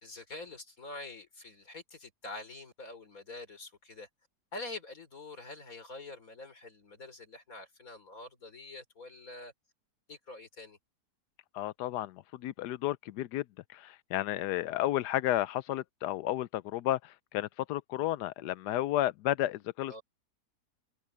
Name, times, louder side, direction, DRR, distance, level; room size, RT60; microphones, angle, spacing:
voice 1, 0.0-4.1 4.5-9.5 10.1-10.8 19.9-20.0, left 2 dB, 55° left, 4.8 m, -46 dB
voice 2, 11.5-20.0, left 14 dB, 80° left, 1.2 m, -32 dB
omnidirectional pair, 1.8 m